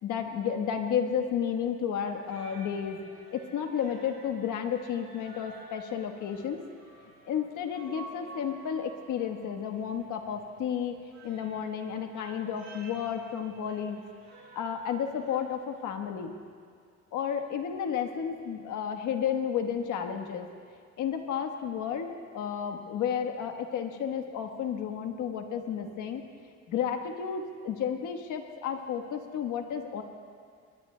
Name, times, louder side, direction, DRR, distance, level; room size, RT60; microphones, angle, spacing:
voice 1, 0.0-3.0 3.3-6.6 7.3-11.0 11.2-14.0 14.5-16.3 17.1-20.4 21.0-26.2 26.7-30.0, left 8 dB, 80° left, 5 dB, 1.3 m, -32 dB
sound 1, 2.0-15.4, right 3 dB, 65° right, 4.4 m, -51 dB
22.5 x 21.5 x 2.2 m, 2.1 s
cardioid pair, 90°, 30 cm